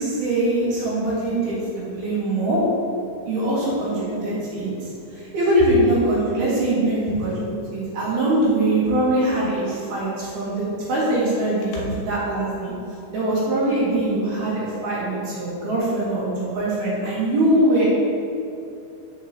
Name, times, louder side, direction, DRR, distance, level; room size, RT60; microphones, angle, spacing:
voice 1, 0.0-2.6 3.3-4.7 5.1-12.7 13.1-17.8, right 1 dB, 55° right, -8 dB, 3.8 m, -22 dB
voice 2, 0.9-1.7 3.0-3.3 3.7-5.3 6.1-6.4 7.0-8.0 10.5-10.7 11.7-12.1 12.8-13.1 14.1-14.2, left 2 dB, 60° left, -5 dB, 2.5 m, -39 dB
14.0 x 6.4 x 3.3 m, 2.6 s
omnidirectional pair, 5.7 m